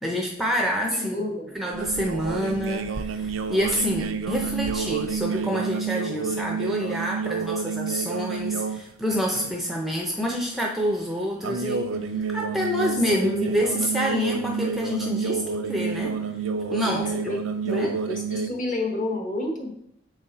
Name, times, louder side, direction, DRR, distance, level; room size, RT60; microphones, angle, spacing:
voice 1, 0.0-1.3 1.5-11.9 12.3-16.2 16.7-17.1 17.7-17.9, equal, ahead, -1 dB, 0.5 m, -27 dB
voice 2, 0.9-1.5 13.1-13.6 16.8-17.4 17.7-19.7, left 1 dB, 40° left, 0 dB, 1.3 m, -30 dB
sound 1, 1.7-8.8 9.1-9.5 11.4-18.5, right 5 dB, 90° right, 0.5 m, -29 dB
7.0 x 4.0 x 4.0 m, 0.72 s
head